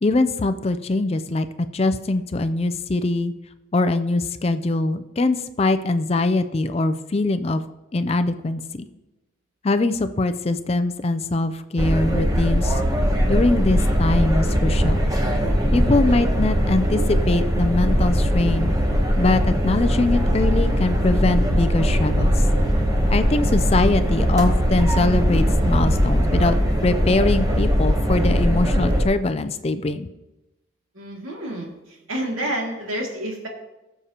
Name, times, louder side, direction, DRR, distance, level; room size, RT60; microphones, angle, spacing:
voice 1, 0.0-3.3 3.7-7.6 7.9-8.9 9.6-12.8 13.3-15.0 15.7-18.7 19.1-22.4 23.1-30.1, left 2 dB, 30° left, 10 dB, 0.4 m, -22 dB
sound 1, 11.8-29.0, equal, 15° right, 0.9 m, -20 dB
voice 2, 30.9-33.5, right 1 dB, 80° right, -1 dB, 2.3 m, -29 dB
19.5 x 6.8 x 2.9 m, 1.0 s
head